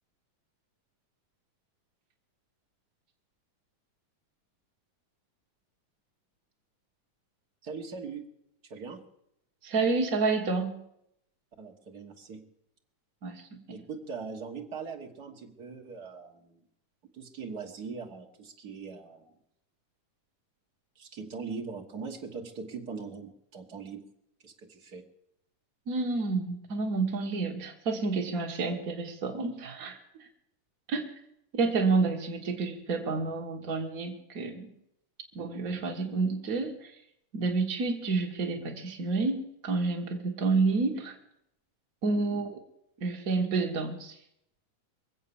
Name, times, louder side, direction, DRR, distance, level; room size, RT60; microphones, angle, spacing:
voice 1, 7.6-8.3 8.6-9.0 11.6-12.4 13.7-16.6 17.1-19.3 20.9-24.1 24.4-25.0 35.4-35.5 42.1-42.4, right 5 dB, 50° right, 1 dB, 1.1 m, -41 dB
voice 2, 9.6-10.8 13.2-13.6 25.9-30.0 30.9-31.1 31.5-34.7 35.3-36.9 37.3-41.2 42.0-42.6 43.0-44.2, right 4 dB, 70° right, 3 dB, 0.8 m, -29 dB
23.0 x 8.0 x 7.0 m, 0.78 s
omnidirectional pair, 3.8 m